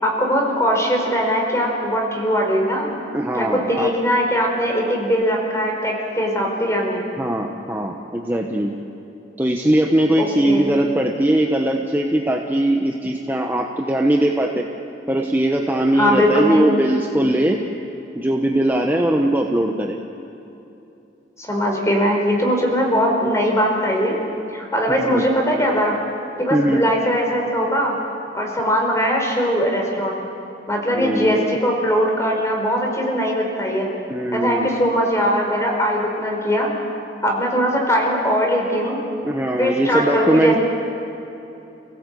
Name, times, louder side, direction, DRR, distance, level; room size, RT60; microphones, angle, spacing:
voice 1, 0.0-2.9 3.3-7.0 10.2-10.8 16.0-16.7 21.4-24.2 24.5-25.9 26.4-27.9 28.3-30.2 30.7-33.9 34.3-36.7 37.2-39.0 39.6-40.6, equal, 15° left, 0 dB, 4.5 m, -20 dB
voice 2, 3.1-3.9 7.2-8.8 9.4-14.7 15.1-17.6 18.1-20.0 24.9-25.2 26.5-26.8 30.9-31.5 34.1-34.8 39.2-40.5, right 1 dB, 10° right, 1 dB, 1.0 m, -20 dB
29.0 x 17.5 x 8.4 m, 2.9 s
head